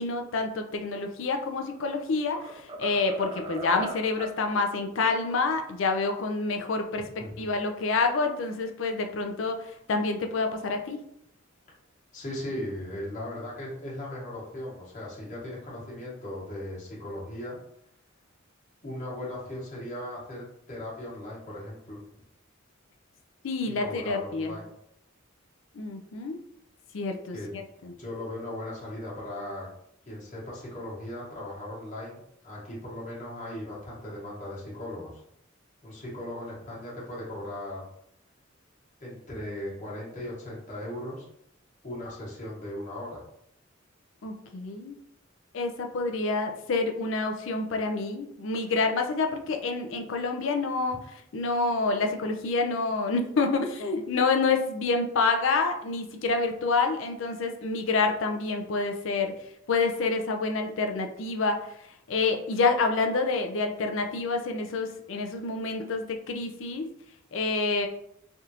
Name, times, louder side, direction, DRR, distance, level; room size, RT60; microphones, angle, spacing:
voice 1, 0.0-11.0 23.4-24.5 25.8-26.4 26.9-27.9 44.2-44.9 45.5-51.0 51.3-59.3 59.7-61.6 62.1-66.9 67.3-67.9, left 3 dB, 70° left, 4 dB, 0.4 m, -28 dB
sound 1, 1.5-1.9 2.3-4.4, right 2 dB, 25° right, 0.3 m, -39 dB
voice 2, 12.1-17.6 18.8-22.0 23.6-24.7 27.3-27.5 28.0-29.7 30.1-35.1 35.8-37.8 39.0-41.2 41.8-43.2, left 1 dB, 40° left, -6 dB, 1.2 m, -38 dB
3.4 x 2.5 x 2.8 m, 0.74 s
head